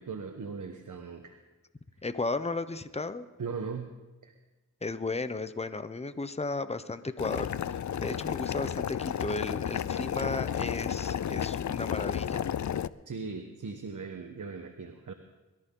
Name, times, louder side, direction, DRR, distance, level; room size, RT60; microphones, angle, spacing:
voice 1, 0.0-1.4 3.4-4.0 4.2-4.3 13.1-15.1, right 5 dB, 65° right, 5 dB, 1.2 m, -39 dB
voice 2, 2.0-3.2 4.8-7.5 8.0-12.5, left 3 dB, 20° left, 12 dB, 0.8 m, -34 dB
Boiling, 7.2-12.9, left 9 dB, 60° left, 0.5 m, -32 dB
22.0 x 13.5 x 3.9 m, 1.2 s
cardioid pair, 55°, 33 cm